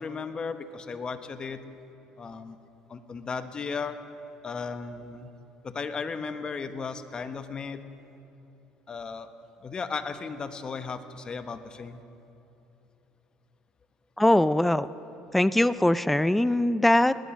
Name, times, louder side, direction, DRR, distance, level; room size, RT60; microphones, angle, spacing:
voice 1, 0.0-1.6 2.2-2.6 2.9-4.0 4.4-5.3 5.6-7.8 8.9-9.3 9.6-12.0, left 5 dB, 35° left, 10 dB, 1.0 m, -35 dB
voice 2, 14.2-14.9 15.3-17.1, left 1 dB, 5° left, 15 dB, 0.4 m, -21 dB
19.5 x 10.0 x 6.4 m, 2.8 s
supercardioid pair, 85°, 3 cm